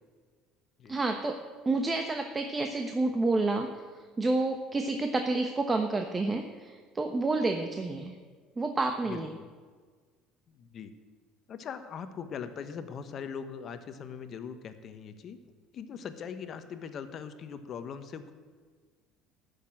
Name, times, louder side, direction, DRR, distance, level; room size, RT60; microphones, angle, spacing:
voice 1, 0.9-3.7 4.2-8.1 8.6-9.3, right 3 dB, 20° right, 5 dB, 1.0 m, -29 dB
voice 2, 9.0-9.5 10.5-10.9 11.5-15.4 15.7-18.3, left 7 dB, 50° left, 9 dB, 1.1 m, -41 dB
12.0 x 6.8 x 8.8 m, 1.5 s
supercardioid pair, 95°, 0 cm